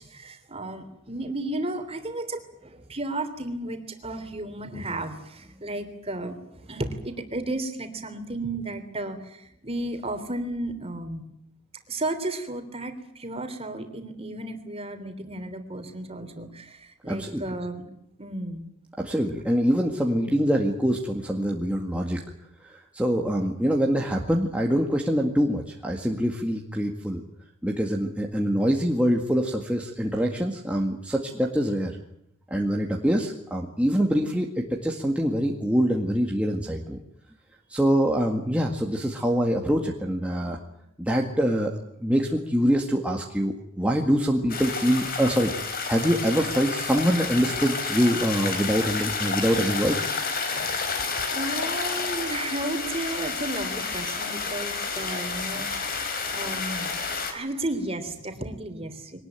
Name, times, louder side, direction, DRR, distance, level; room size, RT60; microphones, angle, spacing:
voice 1, 0.0-11.2 11.9-17.8 18.2-18.6 50.5-56.9 57.3-59.2, right 2 dB, 25° right, 8 dB, 3.4 m, -33 dB
voice 2, 17.1-17.4 19.0-22.2 22.6-27.2 27.6-31.9 32.5-37.0 37.7-40.6 41.0-50.0, equal, 5° right, 0 dB, 2.0 m, -24 dB
sound 1, 44.5-57.3, left 4 dB, 45° left, 4.1 m, -30 dB
23.5 x 19.5 x 9.1 m, 0.77 s
head